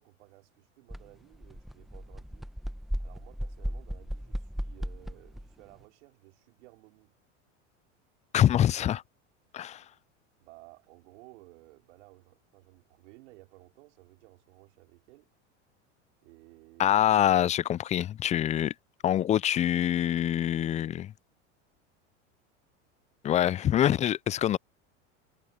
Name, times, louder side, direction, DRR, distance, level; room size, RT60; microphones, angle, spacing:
voice 1, 0.0-2.5 3.0-7.1 10.4-15.3 16.2-17.2, right 21 dB, 70° right, 3.6 m, -56 dB
sound 1, 0.9-1.0 1.3-5.5, equal, ahead, 1.1 m, -36 dB
voice 2, 8.3-9.0 9.5-9.8 16.8-18.7 19.0-21.1 23.2-24.6, left 11 dB, 20° left, 0.4 m, -25 dB
hypercardioid pair, 105°, 36 cm